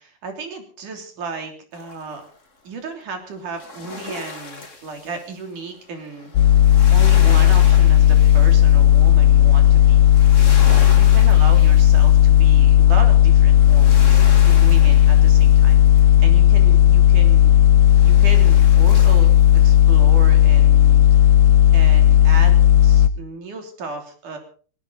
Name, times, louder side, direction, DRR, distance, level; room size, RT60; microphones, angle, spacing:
voice 1, 0.2-2.2 2.6-6.3 6.9-10.0 10.7-17.7 18.0-21.0 21.7-22.5 22.8-24.4, right 4 dB, 55° right, 5 dB, 4.6 m, -34 dB
sound 1, 1.7-2.4 3.5-16.3 17.8-20.0 20.4-20.5, left 3 dB, 20° left, 2.5 m, -37 dB
sound 2, 6.4-23.1, left 11 dB, 75° left, 1.8 m, -13 dB
20.5 x 17.0 x 4.0 m, 0.41 s
omnidirectional pair, 4.3 m